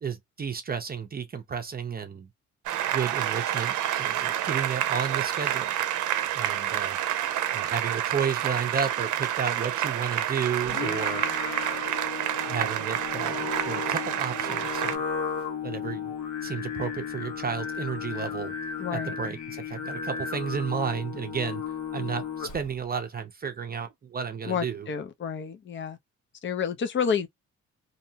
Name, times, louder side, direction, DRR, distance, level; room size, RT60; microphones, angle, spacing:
voice 1, 0.0-2.3 2.9-5.7 6.3-7.0 7.5-11.2 12.5-15.0 15.6-16.1 16.4-18.5 18.9-21.6 21.9-24.9, right 6 dB, 30° right, 0.6 m, -32 dB
Applause, 2.7-15.0, right 11 dB, 75° right, 0.6 m, -29 dB
Singing, 10.6-22.8, left 6 dB, 70° left, 1.2 m, -34 dB
voice 2, 18.8-19.2 24.4-26.0 26.4-27.3, left 7 dB, 40° left, 0.7 m, -29 dB
2.8 x 2.1 x 2.8 m
cardioid pair, 90°, 30 cm